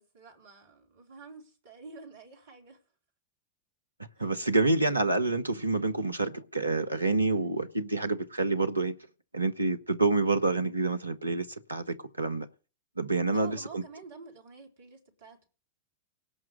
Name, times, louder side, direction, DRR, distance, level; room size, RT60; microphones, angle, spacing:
voice 1, 0.0-2.8 4.2-4.3 13.3-15.5, right 4 dB, 55° right, 4.2 m, -49 dB
voice 2, 4.2-8.9 9.3-12.5 13.0-13.8, right 2 dB, 85° right, 1.1 m, -28 dB
18.0 x 6.0 x 8.8 m
figure-of-eight pair, 90°, 0 cm